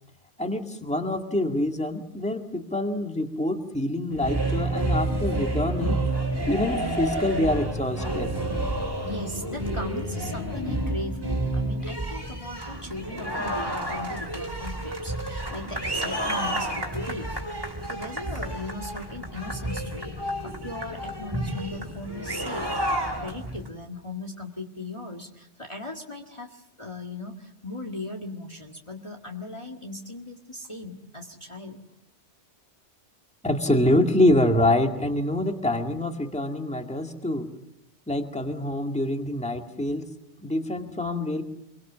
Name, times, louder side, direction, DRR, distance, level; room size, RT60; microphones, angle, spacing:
voice 1, 0.4-6.0 6.5-8.3 33.4-37.5 38.1-40.1 40.4-41.4, left 1 dB, 5° left, 4 dB, 2.0 m, -25 dB
sound 1, 4.1-23.7, right 1 dB, 20° right, 3.7 m, -30 dB
voice 2, 9.0-31.8, left 2 dB, 25° left, 1 dB, 1.8 m, -38 dB
26.5 x 23.0 x 7.3 m, 0.82 s
omnidirectional pair, 1.2 m